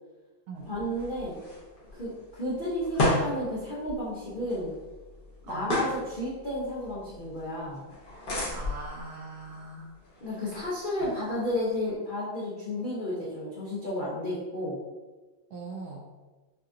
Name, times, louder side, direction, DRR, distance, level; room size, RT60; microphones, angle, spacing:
sound 1, 0.6-11.9, left 1 dB, 40° left, 0.8 m, -35 dB
voice 1, 0.7-1.4 1.9-4.7 5.5-7.8 10.2-14.8, left 1 dB, 70° left, -8 dB, 0.4 m, -32 dB
voice 2, 8.5-9.9 15.5-16.1, right 3 dB, 70° right, -1 dB, 1.0 m, -40 dB
6.5 x 2.5 x 2.7 m, 1.2 s
omnidirectional pair, 2.2 m